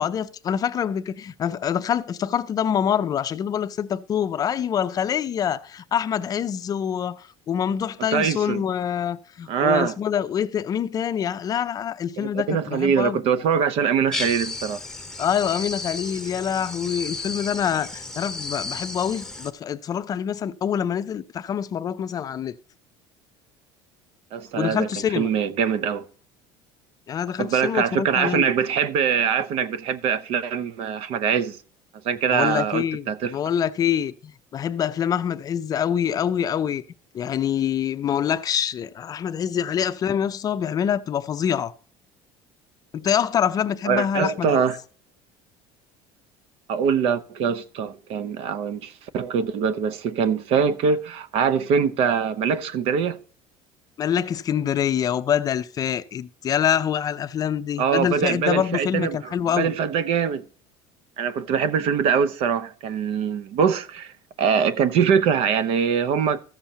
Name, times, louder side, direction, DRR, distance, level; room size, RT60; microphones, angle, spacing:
voice 1, 0.0-13.2 15.2-22.6 24.6-25.3 27.1-28.5 32.3-36.8 37.1-41.7 42.9-44.6 54.0-59.7, left 8 dB, 35° left, 0.5 m, -25 dB
voice 2, 8.1-8.6 9.5-10.0 12.2-14.8 24.3-24.9 25.2-26.1 27.4-31.6 32.0-33.3 43.8-44.8 46.7-53.2 57.8-60.4 61.2-64.1 64.4-66.4, right 7 dB, 60° right, 0.8 m, -23 dB
sound 1, 14.1-19.5, left 3 dB, 5° left, 0.9 m, -33 dB
14.5 x 7.1 x 2.8 m
cardioid pair, 135°, 12 cm